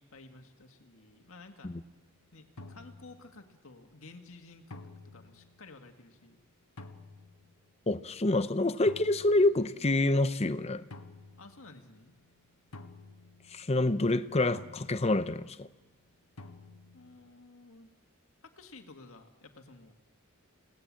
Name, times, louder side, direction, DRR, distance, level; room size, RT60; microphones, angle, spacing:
voice 1, 0.0-1.8 2.3-4.8 5.1-6.4 11.4-12.1 16.9-17.9 18.4-20.0, left 3 dB, 65° left, 2.0 m, -53 dB
sound 1, 2.0-2.1 2.6-3.5 4.7-5.7 6.8-7.5 8.9-10.1 10.9-12.0 12.7-13.9 14.5-15.5 16.4-17.2, left 2 dB, 85° left, 1.5 m, -50 dB
voice 2, 7.9-10.8 13.5-15.7, left 2 dB, 30° left, 0.7 m, -27 dB
29.0 x 18.0 x 7.6 m
head